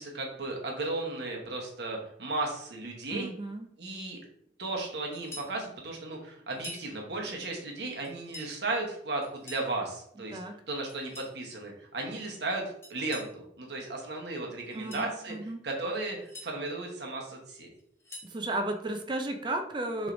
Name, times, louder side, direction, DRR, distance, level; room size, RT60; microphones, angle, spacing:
voice 1, 0.0-3.3 3.8-4.2 4.6-10.4 10.7-12.6 12.9-15.4 15.6-17.7, right 2 dB, 60° right, 0 dB, 1.1 m, -35 dB
voice 2, 3.1-3.7 10.3-10.6 14.7-15.6 18.2-20.1, right 2 dB, 25° right, 5 dB, 0.4 m, -34 dB
sound 1, 5.1-5.6 6.5-6.9 8.0-8.5 9.2-9.7 10.9-11.4 12.8-13.3 14.6-15.1 16.0-16.5 17.8-18.4, left 1 dB, 15° left, 0.7 m, -46 dB
6.1 x 3.2 x 2.6 m, 0.71 s
head